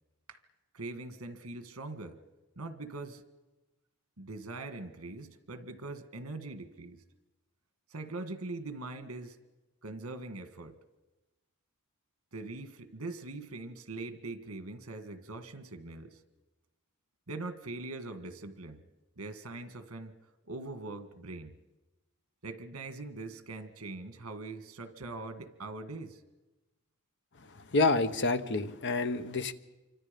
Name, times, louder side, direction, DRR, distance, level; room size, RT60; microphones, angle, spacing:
voice 1, 0.7-2.2 2.5-3.2 4.2-7.0 7.9-9.4 9.8-10.8 12.3-16.2 17.3-18.8 19.2-20.2 20.4-21.5 22.4-26.2, right 2 dB, 75° right, 10 dB, 1.7 m, -42 dB
voice 2, 27.7-29.5, left 3 dB, 55° left, 11 dB, 1.0 m, -28 dB
28.0 x 25.0 x 5.3 m, 1.1 s
head